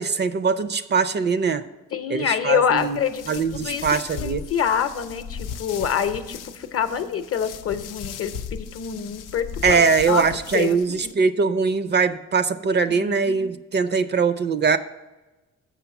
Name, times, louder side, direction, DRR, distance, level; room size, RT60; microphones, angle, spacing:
voice 1, 0.0-1.6 2.1-3.0 3.3-4.5 9.6-14.8, right 5 dB, 35° right, 13 dB, 0.4 m, -22 dB
voice 2, 1.9-10.2 10.5-11.1 12.9-13.4, left 8 dB, 50° left, 9 dB, 0.7 m, -26 dB
sound 1, 2.8-11.1, left 7 dB, 90° left, 0.5 m, -37 dB
7.1 x 5.6 x 5.8 m, 1.1 s
cardioid pair, 90°, 30 cm